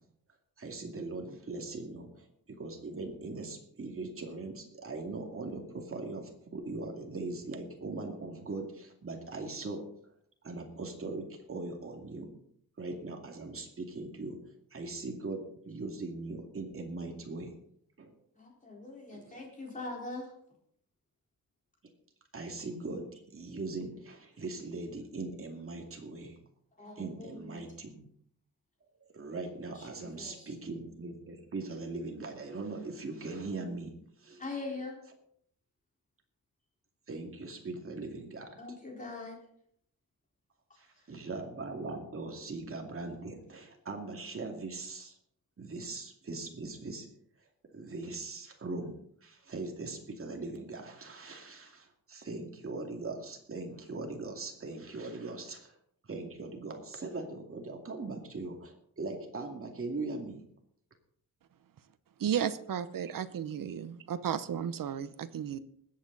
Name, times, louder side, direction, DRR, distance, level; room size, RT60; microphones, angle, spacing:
voice 1, 0.6-9.8 10.4-12.3 12.8-14.4 14.7-17.5 18.0-18.1 19.1-19.4 21.8-21.9 22.3-26.4 27.0-28.1 29.1-33.9 34.2-34.4 37.1-38.6 40.8-45.2 45.6-47.1 47.7-48.9 49.2-55.7 56.1-60.4, right 3 dB, 40° right, 2 dB, 2.4 m, -40 dB
voice 2, 18.4-20.3 26.8-27.6 29.7-30.5 34.4-35.0 38.6-39.4 41.0-41.1, left 3 dB, 20° left, -2 dB, 4.2 m, -42 dB
voice 3, 62.2-65.6, right 8 dB, 70° right, 13 dB, 0.9 m, -34 dB
20.5 x 8.6 x 4.0 m, 0.68 s
wide cardioid pair, 145°, 35 cm